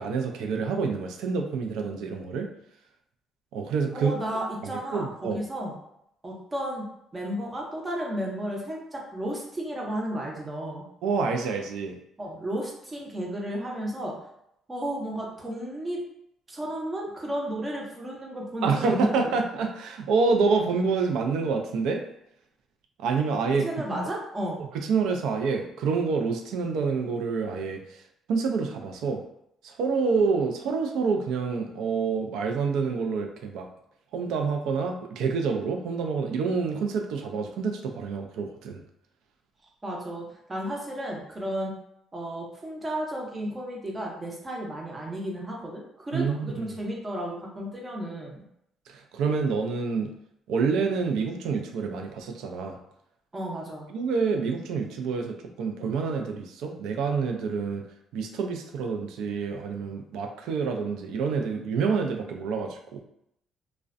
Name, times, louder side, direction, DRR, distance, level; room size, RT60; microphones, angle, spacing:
voice 1, 0.0-2.5 3.5-4.1 4.9-5.4 11.0-12.0 18.6-22.0 23.0-24.0 24.6-28.0 28.3-29.2 29.6-33.7 34.1-38.8 46.1-46.6 48.9-50.1 50.5-52.8 53.9-57.8 58.1-63.0, right 5 dB, 80° right, 3 dB, 0.3 m, -27 dB
voice 2, 3.9-5.8 6.2-10.8 12.2-14.2 14.7-16.1 16.5-19.3 23.6-24.6 39.8-41.7 42.1-48.4 53.3-53.9, right 1 dB, 15° right, -1 dB, 0.5 m, -33 dB
2.4 x 2.1 x 2.4 m, 0.78 s
cardioid pair, 160°, 0 cm